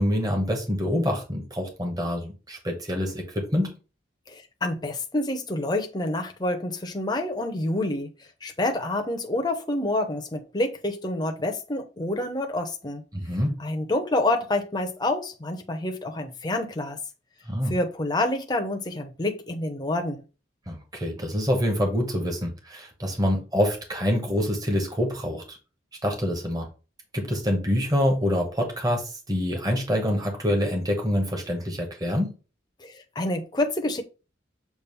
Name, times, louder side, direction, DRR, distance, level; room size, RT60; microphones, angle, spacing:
voice 1, 0.0-3.7 13.1-13.5 17.5-17.7 20.7-25.6 26.0-26.7 27.1-32.3, equal, 20° right, 1.2 m, -26 dB
voice 2, 4.3-8.1 8.4-13.0 13.6-17.0 17.7-20.2 32.8-34.0, left 1 dB, 20° left, 0.7 m, -28 dB
7.0 x 2.5 x 5.3 m
head